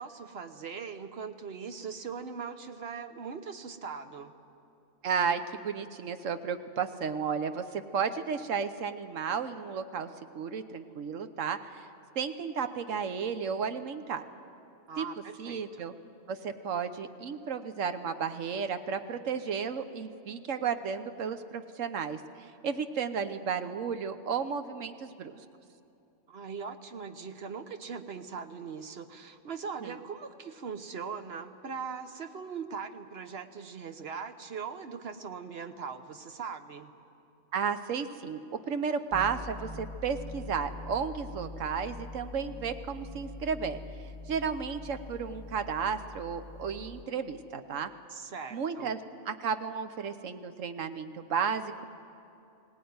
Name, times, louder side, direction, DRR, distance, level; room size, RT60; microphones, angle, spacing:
voice 1, 0.0-4.3 14.9-15.6 26.3-36.9 48.1-48.9, right 6 dB, 55° right, 8 dB, 1.2 m, -40 dB
voice 2, 5.0-10.1 10.3-11.9 12.1-14.2 15.0-15.1 15.4-15.9 16.3-25.4 29.8-30.0 37.5-38.4 38.7-43.8 44.3-47.9 48.5-49.0 49.2-51.9, right 6 dB, 85° right, 9 dB, 1.3 m, -33 dB
sound 1, 39.1-47.0, left 2 dB, ahead, 0.8 m, -44 dB
20.5 x 17.5 x 9.5 m, 2.7 s
omnidirectional pair, 1.3 m